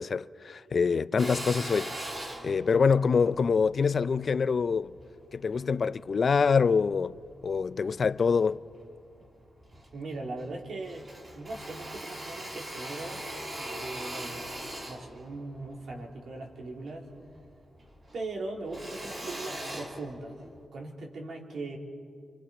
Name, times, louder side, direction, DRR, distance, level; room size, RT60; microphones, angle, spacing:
voice 1, 0.0-1.9 2.4-4.9 5.3-7.2 7.4-8.6, left 5 dB, 50° left, 0.4 m, -25 dB
Drill, 1.2-5.7 6.3-7.4 7.9-8.8 9.2-9.3 9.6-10.6 10.8-17.5 17.8-20.7, right 1 dB, 35° right, 3.3 m, -41 dB
voice 2, 9.9-11.1 11.3-13.2 13.6-14.5 14.9-17.1 18.1-20.4 20.7-21.8, right 2 dB, 65° right, 2.9 m, -39 dB
27.5 x 26.5 x 4.3 m
wide cardioid pair, 110°, 0 cm